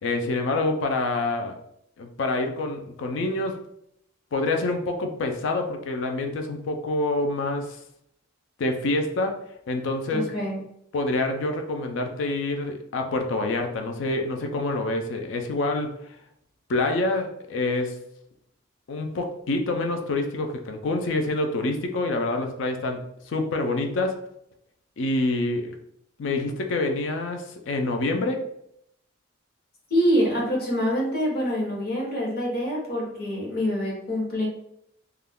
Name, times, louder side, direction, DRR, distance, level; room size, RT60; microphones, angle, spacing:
voice 1, 0.0-1.6 2.0-3.6 4.3-7.8 8.6-9.4 9.7-10.3 10.9-16.0 16.7-18.0 18.9-24.2 25.0-25.7 26.2-28.5, left 2 dB, 65° left, 4 dB, 0.4 m, -27 dB
voice 2, 10.1-10.6 29.9-34.5, equal, 50° left, -3 dB, 0.9 m, -25 dB
2.3 x 2.2 x 3.4 m, 0.75 s
head